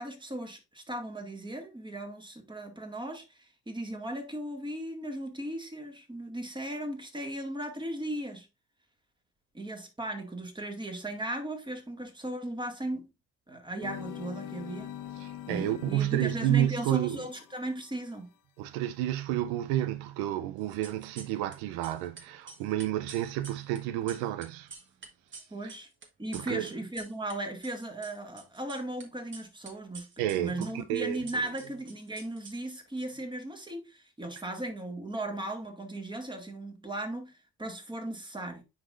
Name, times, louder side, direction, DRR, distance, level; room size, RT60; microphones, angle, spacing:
voice 1, 0.0-8.5 9.5-13.1 13.5-14.9 15.5-18.3 25.5-25.9 26.2-30.1 30.4-38.6, right 1 dB, 10° right, 2.0 m, -37 dB
sound 1, 13.8-18.1, left 11 dB, 60° left, 1.2 m, -44 dB
voice 2, 15.2-17.2 18.6-24.7 26.3-26.7 30.2-31.4, right 13 dB, 80° right, 0.6 m, -30 dB
sound 2, 20.6-21.6 21.8-27.3 27.6-29.0 29.3-33.0, right 4 dB, 30° right, 1.4 m, -48 dB
9.5 x 4.1 x 2.5 m
supercardioid pair, 75°, 37 cm